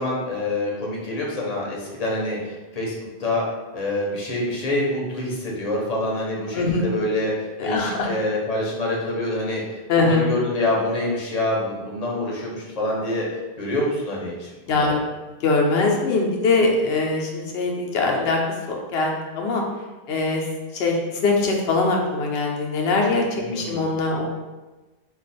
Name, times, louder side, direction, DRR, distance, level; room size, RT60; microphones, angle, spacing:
voice 1, 0.0-2.9 3.2-3.4 3.7-7.3 7.6-9.6 9.9-13.3 13.6-15.0 23.4-23.8, left 1 dB, 45° left, -3 dB, 0.8 m, -26 dB
voice 2, 6.5-6.9 7.6-8.1 9.9-10.2 14.7-15.0 15.4-18.4 18.7-19.6 20.1-20.4 20.7-21.0 21.2-23.2 23.5-24.3, left 3 dB, 80° left, 0 dB, 0.8 m, -22 dB
2.3 x 2.3 x 4.0 m, 1.2 s
omnidirectional pair, 1.0 m